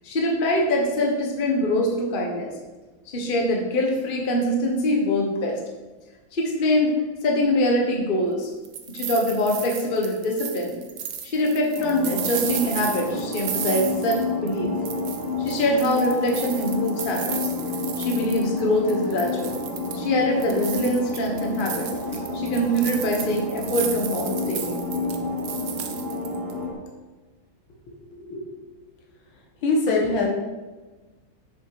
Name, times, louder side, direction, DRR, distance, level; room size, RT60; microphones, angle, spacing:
voice 1, 0.0-2.5 3.1-5.6 6.3-8.5 8.9-10.8 11.2-14.7 15.4-17.4 18.0-19.6 19.9-21.9 22.3-24.8, left 1 dB, 30° left, 1 dB, 1.2 m, -24 dB
sound 1, 8.4-14.6 14.9-18.6 18.9-20.1 20.4-26.5, right 8 dB, 65° right, 1.4 m, -34 dB
sound 2, 11.8-26.7, left 3 dB, 10° right, 2.6 m, -30 dB
voice 2, 27.9-28.6 29.6-30.3, left 3 dB, 70° left, 0 dB, 2.2 m, -24 dB
7.4 x 6.9 x 4.9 m, 1.2 s
omnidirectional pair, 2.3 m